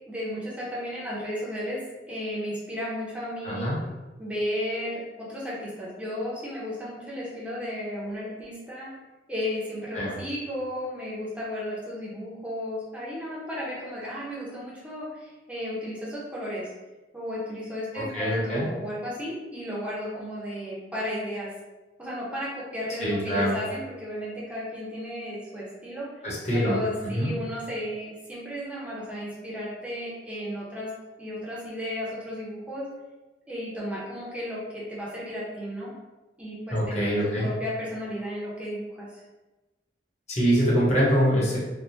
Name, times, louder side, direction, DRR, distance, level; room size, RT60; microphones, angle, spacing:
voice 1, 0.1-1.8 2.1-3.7 4.2-8.9 9.3-16.7 17.1-21.5 22.0-26.1 26.5-30.9 31.2-32.9 33.5-35.9 36.4-39.2, equal, 10° right, -7 dB, 0.8 m, -34 dB
voice 2, 3.4-3.8 9.9-10.1 17.9-18.7 23.0-23.5 26.2-27.3 36.7-37.5 40.3-41.6, equal, 40° left, -7 dB, 1.1 m, -24 dB
3.4 x 2.3 x 2.8 m, 1.1 s
head